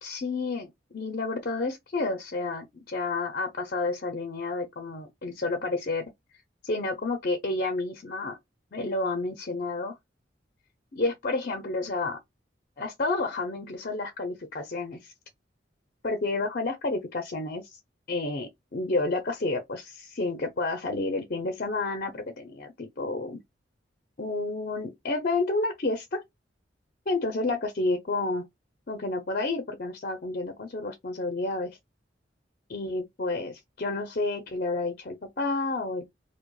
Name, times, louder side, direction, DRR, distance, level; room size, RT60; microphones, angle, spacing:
voice 1, 0.0-6.0 6.6-8.4 8.7-9.9 10.9-12.2 12.8-15.1 16.0-17.8 18.1-23.4 24.2-26.2 27.1-28.4 28.9-31.7 32.7-36.0, left 3 dB, 50° left, 0.6 m, -30 dB
4.7 x 2.2 x 2.3 m
head